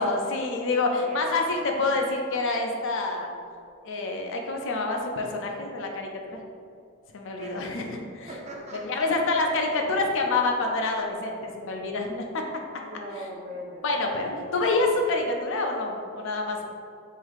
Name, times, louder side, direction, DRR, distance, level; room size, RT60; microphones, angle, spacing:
voice 1, 0.0-3.3 3.8-6.4 7.1-8.3 8.8-12.4 13.8-16.6, left 3 dB, 60° left, 2 dB, 0.5 m, -27 dB
voice 2, 7.4-7.9 8.3-9.0 9.6-10.6 11.0-11.1 11.4-11.6 12.6-13.9 14.2-14.5, equal, 30° right, -2 dB, 0.6 m, -41 dB
3.7 x 2.7 x 4.6 m, 2.4 s
head